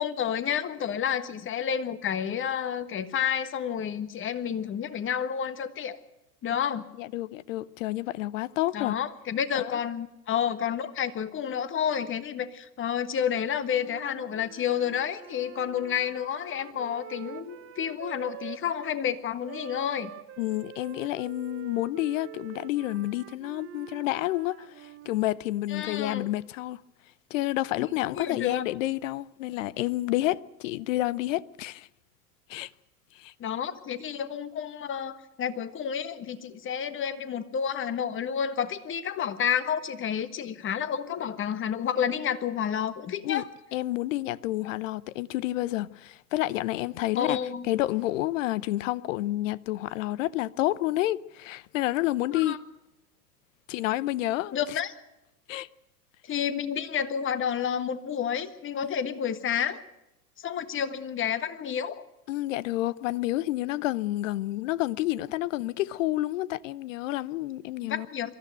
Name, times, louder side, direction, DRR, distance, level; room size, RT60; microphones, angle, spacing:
voice 1, 0.0-6.0 6.4-6.9 8.7-20.1 25.7-26.3 28.1-28.6 33.4-43.5 47.2-47.7 52.3-52.6 54.5-54.9 56.3-59.8 60.4-62.0 67.8-68.3, left 8 dB, 25° left, 1.4 m, -30 dB
voice 2, 7.0-9.0 9.5-9.8 20.4-26.8 27.3-31.9 32.5-32.7 33.1-33.3 43.2-43.4 43.7-47.4 47.6-52.6 53.7-54.8 55.5-55.7 58.8-58.9 62.3-68.1, left 16 dB, 55° left, 0.8 m, -29 dB
Wind instrument woodwind instrument, 13.5-19.0 19.4-25.3, right 12 dB, 25° right, 1.5 m, -46 dB
23.0 x 14.0 x 9.2 m
figure-of-eight pair, 90°, 47 cm